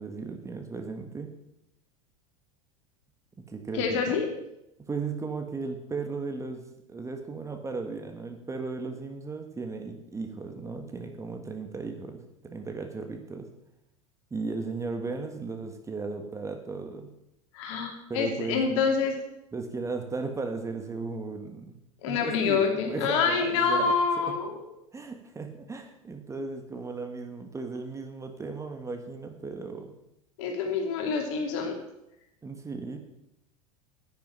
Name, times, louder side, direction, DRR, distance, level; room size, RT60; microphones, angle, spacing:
voice 1, 0.0-1.3 3.4-4.2 4.8-13.5 14.3-17.1 18.1-18.9 19.5-21.7 22.0-23.9 24.3-24.4 24.9-29.9 32.4-33.0, right 4 dB, 15° right, 5 dB, 1.6 m, -36 dB
voice 2, 3.7-4.3 17.5-19.1 22.0-24.5 30.4-31.8, left 5 dB, 60° left, 3 dB, 2.8 m, -26 dB
10.0 x 9.6 x 5.6 m, 0.86 s
figure-of-eight pair, 80°, 18 cm